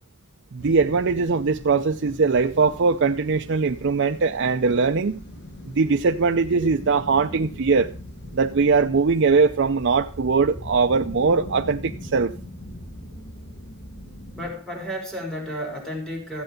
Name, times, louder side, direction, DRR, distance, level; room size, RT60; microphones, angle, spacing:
voice 1, 0.5-5.2 5.7-7.9 8.3-12.3, right 4 dB, 60° right, 0.5 m, -21 dB
sound 1, 0.6-14.5, left 1 dB, 55° left, 2.8 m, -41 dB
voice 2, 14.3-16.4, equal, 5° left, 4.7 m, -32 dB
14.5 x 7.9 x 5.1 m
head